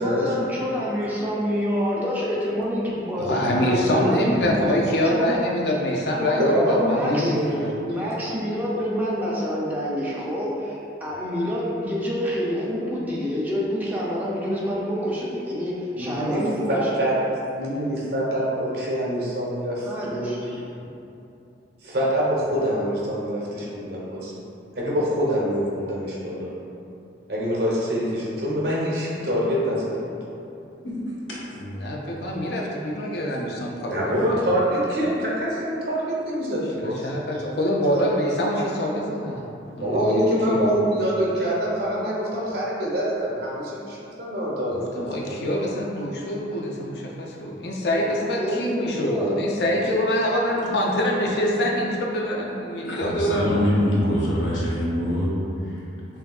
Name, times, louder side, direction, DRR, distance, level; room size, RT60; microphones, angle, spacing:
voice 1, 0.0-4.7 5.0-5.3 6.2-7.3 7.8-17.0 19.8-20.8 46.9-47.1 48.1-49.4, equal, 10° right, -6 dB, 0.5 m, -27 dB
voice 2, 3.2-7.7 31.6-34.2 36.8-40.7 44.7-53.8, equal, 60° left, -1 dB, 0.4 m, -25 dB
voice 3, 6.4-7.7 16.0-17.2 17.5-20.4 21.8-24.3 24.7-26.5 27.3-30.1 33.9-37.4 39.8-45.4, equal, 60° right, -6 dB, 0.9 m, -25 dB
voice 4, 30.8-31.4 52.9-55.3 55.6-55.9, equal, 85° left, -6 dB, 0.9 m, -24 dB
5.6 x 2.6 x 2.3 m, 2.7 s
head